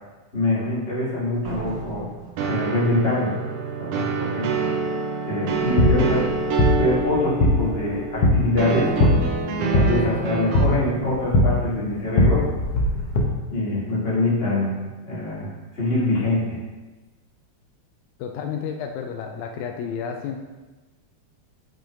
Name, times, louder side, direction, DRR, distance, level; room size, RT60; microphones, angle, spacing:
voice 1, 0.3-2.1 2.5-3.3 3.8-4.5 4.8-6.3 6.8-8.9 9.6-12.5 13.5-16.6, left 1 dB, 20° left, -8 dB, 2.0 m, -24 dB
Slam, 1.4-3.3, right 5 dB, 70° right, 1.6 m, -37 dB
sound 1, 2.4-10.6, right 4 dB, 90° right, 2.2 m, -27 dB
sound 2, 5.4-13.2, left 1 dB, 65° left, 1.7 m, -21 dB
voice 2, 18.2-20.4, left 7 dB, 80° left, 3 dB, 1.9 m, -31 dB
8.1 x 6.8 x 2.5 m, 1.2 s
omnidirectional pair, 3.4 m